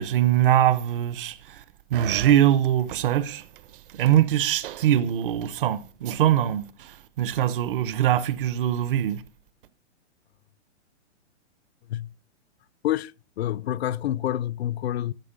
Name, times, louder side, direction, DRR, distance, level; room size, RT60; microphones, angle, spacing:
voice 1, 0.0-1.6 1.9-3.4 3.9-9.2, right 11 dB, 50° right, 0.9 m, -22 dB
voice 2, 13.4-15.1, left 12 dB, 65° left, 0.5 m, -27 dB
13.5 x 6.9 x 5.3 m
hypercardioid pair, 155°, 35 cm